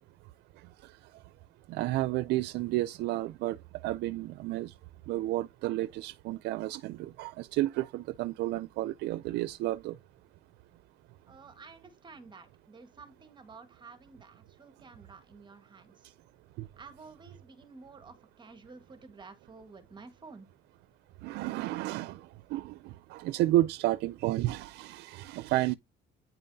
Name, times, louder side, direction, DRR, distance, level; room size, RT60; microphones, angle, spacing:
voice 1, 1.7-3.6 3.8-4.7 5.1-10.0 16.6-16.7 21.2-25.7, right 16 dB, 80° right, 0.4 m, -31 dB
voice 2, 11.3-16.1 16.8-20.5, right 4 dB, 25° right, 1.6 m, -51 dB
9.2 x 5.4 x 2.7 m
cardioid pair, 110°, 17 cm